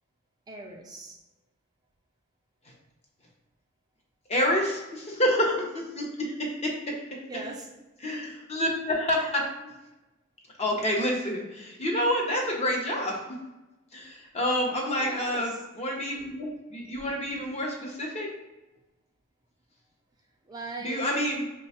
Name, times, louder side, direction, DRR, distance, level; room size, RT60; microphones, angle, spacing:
voice 1, 0.5-1.2 7.3-7.7 15.0-15.5 20.5-21.1, right 3 dB, 20° right, 1 dB, 0.3 m, -39 dB
voice 2, 4.3-6.9 8.0-9.5 10.6-13.2 13.9-15.5 15.7-18.3 20.8-21.4, equal, 30° left, -1 dB, 0.7 m, -28 dB
3.2 x 2.2 x 4.1 m, 1.0 s
head